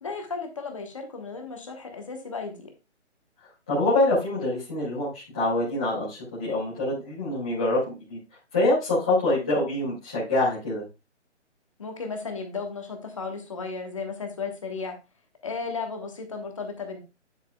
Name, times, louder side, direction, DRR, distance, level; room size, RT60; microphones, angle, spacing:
voice 1, 0.0-2.7 11.8-14.9 15.4-17.0, left 4 dB, 25° left, 4 dB, 1.2 m, -34 dB
voice 2, 3.7-8.2 8.5-10.8, left 2 dB, 5° left, -14 dB, 0.8 m, -25 dB
9.1 x 7.9 x 2.3 m, 0.27 s
hypercardioid pair, 175°, 36 cm